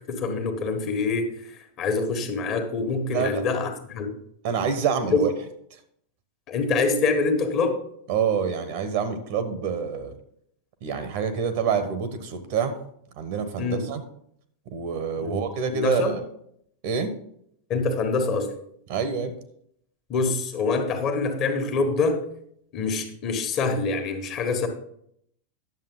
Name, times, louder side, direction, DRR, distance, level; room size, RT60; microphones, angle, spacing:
voice 1, 0.1-4.2 5.1-5.2 6.5-7.8 13.6-13.8 15.2-15.4 15.7-16.2 17.7-18.5 20.1-22.2 22.7-24.7, left 4 dB, 35° left, 5 dB, 1.6 m, -25 dB
voice 2, 3.1-3.4 4.4-5.3 8.1-10.1 10.8-12.8 13.2-14.0 14.7-16.2 16.8-17.1 18.9-19.3, right 6 dB, 50° right, 10 dB, 1.2 m, -27 dB
10.5 x 7.3 x 3.9 m, 0.70 s
figure-of-eight pair, 90°, 0 cm